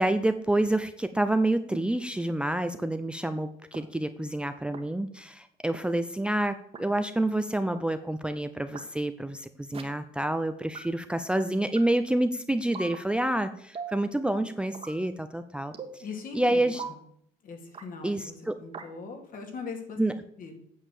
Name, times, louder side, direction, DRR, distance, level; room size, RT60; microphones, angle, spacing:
voice 1, 0.0-16.0 16.3-16.8 18.0-18.6 20.0-20.1, right 1 dB, 5° right, 9 dB, 0.6 m, -28 dB
sound 1, 1.7-1.8 2.7-2.8 3.7-3.8 4.7-4.8 5.7-5.8 6.7-6.8 7.7-7.8 8.7-8.8 9.7-9.8 10.7-10.8 11.7-11.8 12.7-13.0 13.7-14.0 14.7-15.0 15.7-16.0 16.7-16.9 17.7-17.9 18.7-18.9, right 5 dB, 35° right, 1.5 m, -39 dB
voice 2, 16.0-16.9 17.4-18.3 18.6-20.0 20.4-20.6, left 5 dB, 55° left, 4 dB, 2.6 m, -40 dB
9.1 x 6.5 x 7.1 m, 0.68 s
cardioid pair, 110°, 17 cm